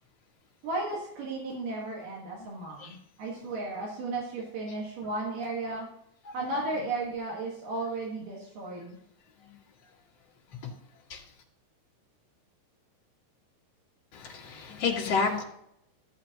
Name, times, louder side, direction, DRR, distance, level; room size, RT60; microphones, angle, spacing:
voice 1, 0.6-5.9 6.3-9.0, right 2 dB, 80° right, -3 dB, 3.2 m, -34 dB
voice 2, 14.1-15.4, left 5 dB, 40° left, -3 dB, 2.0 m, -30 dB
13.5 x 8.1 x 2.9 m, 0.76 s
omnidirectional pair, 3.8 m